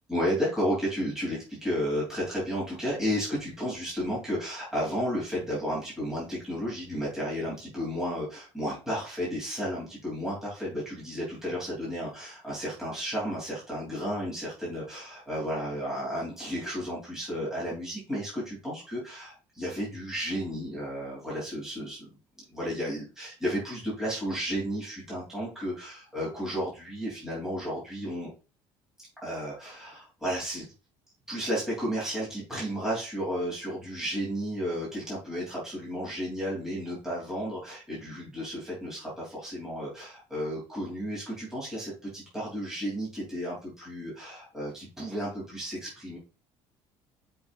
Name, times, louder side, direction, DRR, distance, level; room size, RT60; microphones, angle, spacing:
voice 1, 0.1-22.1 22.5-28.3 29.2-30.7 31.3-46.2, equal, 5° right, -7 dB, 3.2 m, -33 dB
6.8 x 5.4 x 2.6 m, 0.33 s
cardioid pair, 180°, 10 cm